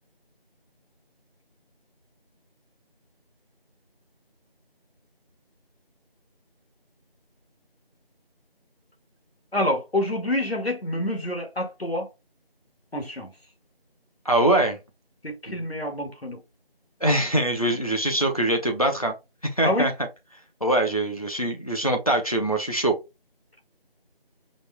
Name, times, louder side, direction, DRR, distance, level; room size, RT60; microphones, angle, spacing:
voice 1, 9.5-12.1 12.9-13.3 15.2-16.4 19.6-19.9, left 1 dB, 90° left, 1.9 m, -27 dB
voice 2, 14.2-14.8 15.5-15.6 17.0-19.1 19.6-19.9 20.6-22.9, right 1 dB, 40° left, 0.9 m, -23 dB
5.2 x 2.4 x 3.4 m
figure-of-eight pair, 180°, 30 cm